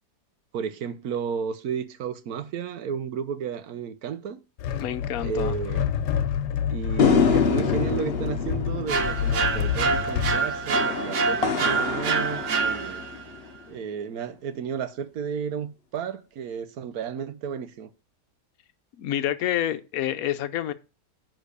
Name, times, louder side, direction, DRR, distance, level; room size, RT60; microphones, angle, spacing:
voice 1, 0.5-4.4 5.2-5.9 6.7-13.0 13.7-17.9, right 7 dB, 65° right, 1.2 m, -32 dB
sound 1, 4.6-10.4, left 8 dB, 85° left, 1.3 m, -28 dB
voice 2, 4.8-5.5 19.0-20.7, left 11 dB, 65° left, 1.1 m, -28 dB
sound 2, 7.0-13.5, left 6 dB, 45° left, 0.9 m, -27 dB
sound 3, 8.9-13.2, right 4 dB, 85° right, 1.6 m, -26 dB
9.9 x 3.9 x 6.7 m
omnidirectional pair, 1.7 m